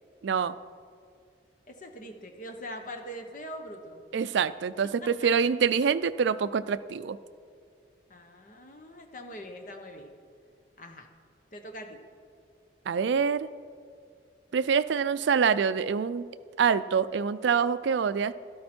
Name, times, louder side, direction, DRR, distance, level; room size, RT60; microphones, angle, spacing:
voice 1, 0.2-0.6 4.1-7.2 12.9-13.5 14.5-16.2 16.6-18.3, right 6 dB, 70° right, 15 dB, 0.4 m, -25 dB
voice 2, 1.7-4.0 5.0-5.1 8.1-10.1 10.8-11.1 11.5-12.0, equal, 45° left, 5 dB, 1.0 m, -42 dB
12.0 x 12.0 x 4.4 m, 2.3 s
head